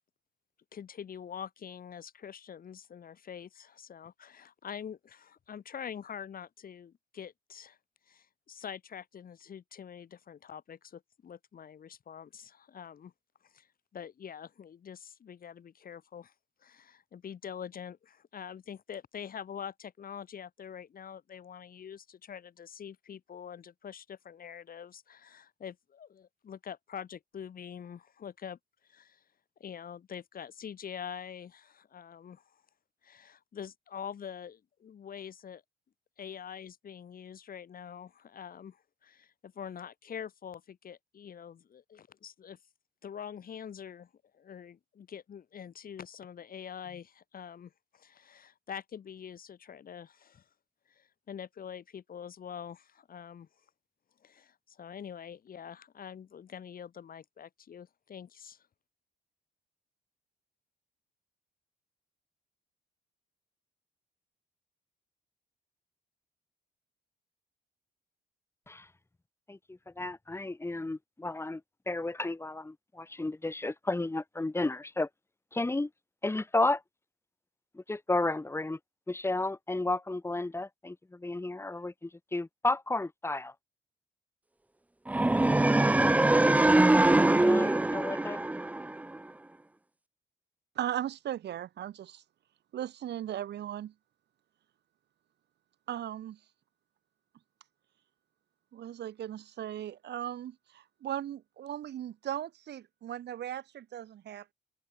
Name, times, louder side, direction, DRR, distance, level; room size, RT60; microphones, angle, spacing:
voice 1, 0.7-7.8 8.1-13.1 13.4-13.7 13.9-16.3 16.6-28.6 28.9-29.2 29.6-32.6 33.0-35.6 36.2-42.6 43.0-50.4 50.9-53.5 54.2-58.6, left 8 dB, 50° left, 7.9 m, -45 dB
voice 2, 69.5-71.6 71.9-75.1 75.5-75.9 76.2-76.8 77.7-78.8 79.1-83.5 87.3-88.4, left 2 dB, 15° left, 2.3 m, -32 dB
sound 1, 85.1-89.2, right 2 dB, 10° right, 0.5 m, -23 dB
voice 3, 90.8-92.2 92.7-93.9 95.9-96.4 98.7-104.5, right 11 dB, 65° right, 7.1 m, -37 dB
open air
cardioid pair, 90°, 18 cm